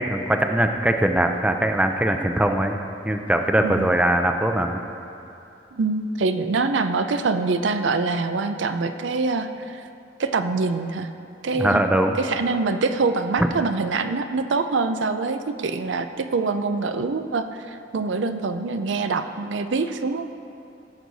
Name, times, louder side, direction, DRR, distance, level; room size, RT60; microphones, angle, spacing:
voice 1, 0.0-2.8 3.0-4.8 11.5-12.2, right 1 dB, 5° right, 5 dB, 0.4 m, -21 dB
voice 2, 5.7-9.8 10.2-11.1 11.4-11.8 12.2-20.2, right 3 dB, 80° right, 9 dB, 0.5 m, -24 dB
15.5 x 6.3 x 4.0 m, 2.7 s
head